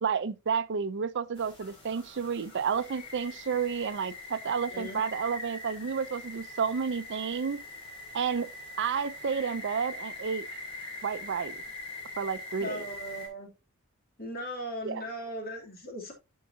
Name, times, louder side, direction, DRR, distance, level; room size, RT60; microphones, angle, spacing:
voice 1, 0.0-7.6 8.1-8.5 8.8-10.4 11.0-11.6 12.2-12.8 14.8-15.0, right 6 dB, 55° right, 0.5 m, -31 dB
sound 1, 1.4-13.3, left 2 dB, 25° left, 4.7 m, -43 dB
voice 2, 4.7-5.0 12.6-13.5 14.2-16.1, equal, 45° left, 2.8 m, -38 dB
14.0 x 4.7 x 2.7 m
head